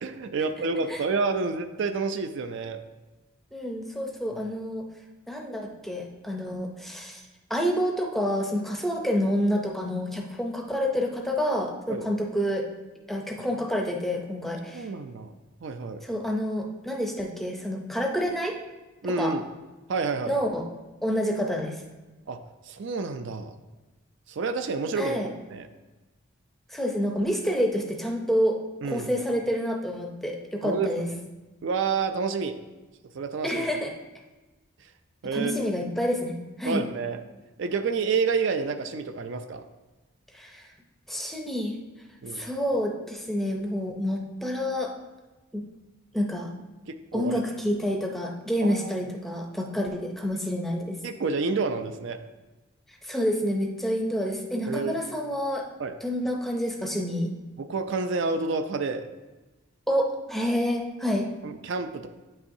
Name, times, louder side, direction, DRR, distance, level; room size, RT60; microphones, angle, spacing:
voice 1, 0.0-2.8 11.9-12.1 14.7-15.3 15.6-16.0 19.0-19.4 19.9-20.4 22.3-22.4 22.7-23.5 24.3-25.2 25.5-25.7 28.8-29.1 30.6-30.9 31.6-32.6 33.1-33.7 35.2-35.6 36.6-37.2 37.6-39.6 42.2-42.4 46.9-47.4 48.6-48.9 51.0-52.2 54.7-55.0 55.8-55.9 57.6-59.1 61.4-62.1, right 4 dB, 60° right, 9 dB, 0.4 m, -29 dB
voice 2, 0.6-1.0 3.5-4.9 5.3-7.2 7.5-12.6 13.1-14.9 16.0-18.6 19.2-19.4 20.3-20.6 21.0-21.8 25.0-25.3 26.7-28.6 28.8-31.1 33.4-33.9 35.3-36.8 40.3-40.7 41.1-41.7 42.3-44.9 45.5-45.6 46.1-46.5 47.1-51.0 53.0-55.7 56.0-57.3 59.9-61.3, equal, ahead, 1 dB, 0.5 m, -28 dB
8.9 x 5.5 x 2.7 m, 1.1 s
head